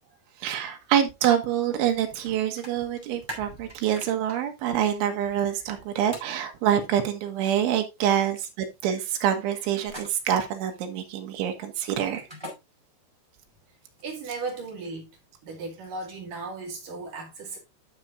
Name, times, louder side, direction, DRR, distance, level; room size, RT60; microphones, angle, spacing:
voice 1, 0.4-12.2, right 10 dB, 80° right, 3.8 m, -26 dB
sound 1, 2.1-2.3 2.6-4.4 6.1-6.3 9.8-10.4 12.1-12.5 13.9-14.8, right 1 dB, 5° right, 3.7 m, -41 dB
voice 2, 14.0-15.1 15.4-17.6, right 3 dB, 50° right, 3.2 m, -36 dB
11.5 x 7.2 x 2.5 m
omnidirectional pair, 5.6 m